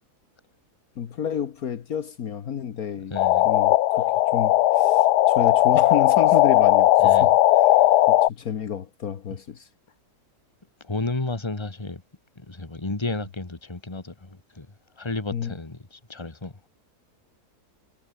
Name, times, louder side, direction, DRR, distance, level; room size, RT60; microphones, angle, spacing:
voice 1, 1.0-3.1 3.4-7.4 8.1-9.7 15.3-15.5, left 8 dB, 65° left, 1.6 m, -30 dB
voice 2, 3.1-3.5 7.0-7.3 10.8-12.0 12.4-14.7 15.0-16.5, left 2 dB, 15° left, 1.9 m, -32 dB
sound 1, 3.2-8.3, left 14 dB, 85° left, 1.2 m, -18 dB
omnidirectional pair, 1.7 m